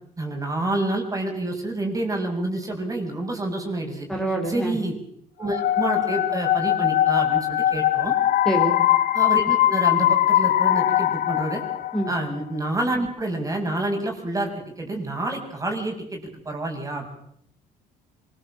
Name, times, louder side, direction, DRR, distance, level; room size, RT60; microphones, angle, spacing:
voice 1, 0.2-4.1 4.4-4.9 5.4-8.1 9.1-11.6 12.1-17.0, right 2 dB, 20° right, 2 dB, 6.4 m, -28 dB
voice 2, 4.1-4.8 8.5-8.7 11.9-12.1, right 1 dB, 5° left, 0 dB, 5.5 m, -25 dB
sound 1, 5.5-12.3, left 12 dB, 60° left, 1.1 m, -21 dB
25.5 x 20.5 x 7.4 m, 0.70 s
cardioid pair, 110°, 17 cm